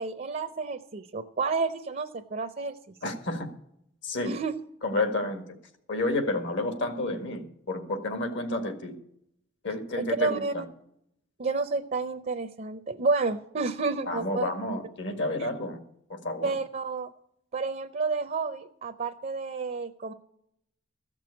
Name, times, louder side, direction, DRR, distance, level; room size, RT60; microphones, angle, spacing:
voice 1, 0.0-2.8 4.2-4.5 10.0-10.7 11.4-14.5 16.4-17.1 17.5-20.1, right 4 dB, 45° right, 9 dB, 0.6 m, -30 dB
voice 2, 3.0-3.5 4.0-4.4 4.8-5.4 5.9-8.9 9.6-10.6 14.1-15.8 16.1-16.6, left 2 dB, 65° left, 7 dB, 1.8 m, -30 dB
15.0 x 6.1 x 8.4 m, 0.74 s
head